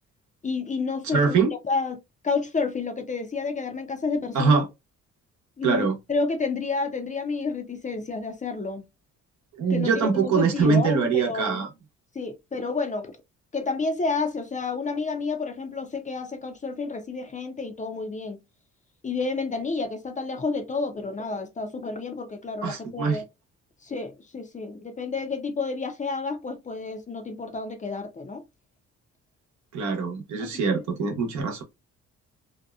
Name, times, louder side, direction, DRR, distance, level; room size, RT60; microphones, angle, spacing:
voice 1, 0.4-1.4 1.7-2.0 2.2-4.6 5.6-8.8 9.7-11.6 12.1-13.1 13.5-18.4 19.0-23.2 23.8-28.4 30.4-31.2, left 4 dB, 25° left, 0.5 m, -30 dB
voice 2, 1.1-1.5 4.3-4.6 5.6-6.0 9.6-11.7 22.6-23.2 29.7-31.6, right 5 dB, 70° right, 0.9 m, -23 dB
2.7 x 2.2 x 2.3 m
cardioid pair, 90°, 30 cm